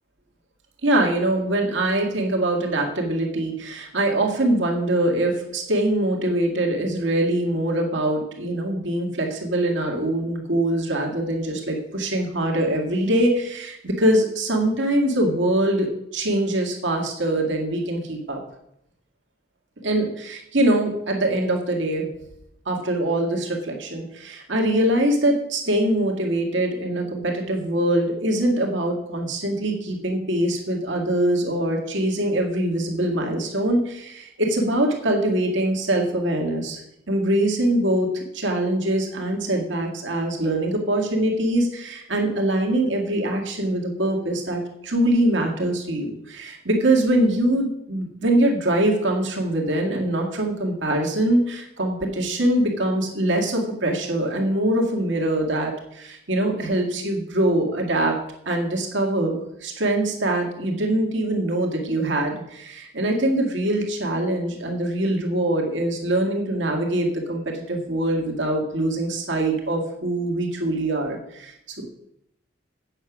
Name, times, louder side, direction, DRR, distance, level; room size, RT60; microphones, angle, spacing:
voice 1, 0.8-18.4 19.8-22.1 22.7-36.8 37.1-58.2 58.5-72.0, right 1 dB, 65° right, 1 dB, 2.0 m, -23 dB
8.8 x 6.6 x 6.1 m, 0.78 s
head